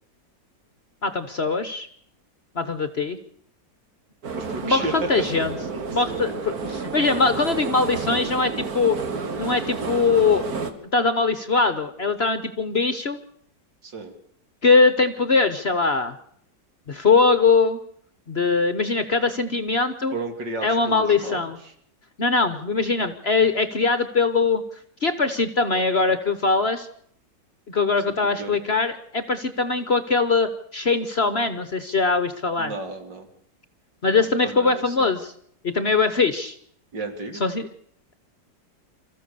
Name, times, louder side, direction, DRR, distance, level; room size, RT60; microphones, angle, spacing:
voice 1, 1.0-1.9 2.5-3.2 4.6-5.5 5.9-9.0 9.4-10.4 10.9-13.2 14.6-16.1 16.9-17.8 18.3-20.1 20.6-21.6 22.2-24.6 25.0-26.9 27.7-32.7 34.0-35.3 35.6-36.6 37.4-37.7, left 4 dB, 45° left, 11 dB, 1.0 m, -21 dB
sound 1, 4.2-10.7, right 4 dB, 55° right, 2.1 m, -31 dB
voice 2, 4.3-5.3 5.7-6.2 13.8-14.1 20.1-21.4 28.1-28.6 32.6-33.3 34.1-35.1 36.9-37.4, right 3 dB, 75° right, 5 dB, 3.4 m, -33 dB
26.5 x 14.5 x 6.8 m, 0.67 s
omnidirectional pair, 2.0 m